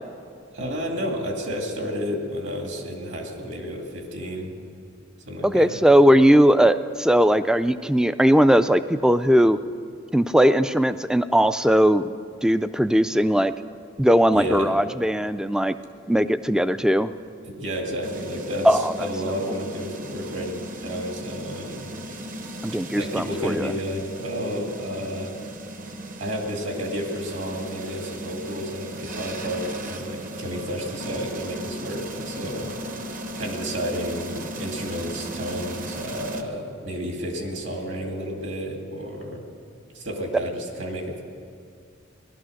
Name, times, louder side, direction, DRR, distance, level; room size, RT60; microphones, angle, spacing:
voice 1, 0.5-4.6 5.3-5.8 14.3-14.7 17.4-21.9 22.9-25.3 26.2-32.7 33.4-39.5 39.9-41.2, equal, 65° right, 2 dB, 2.4 m, -31 dB
voice 2, 5.4-9.6 10.1-12.1 12.4-13.5 14.0-15.7 16.1-17.1 18.6-19.1 22.6-23.7, equal, 5° right, 12 dB, 0.3 m, -19 dB
sound 1, 18.0-36.4, right 1 dB, 40° right, 0.9 m, -36 dB
17.5 x 12.0 x 6.4 m, 2.4 s
head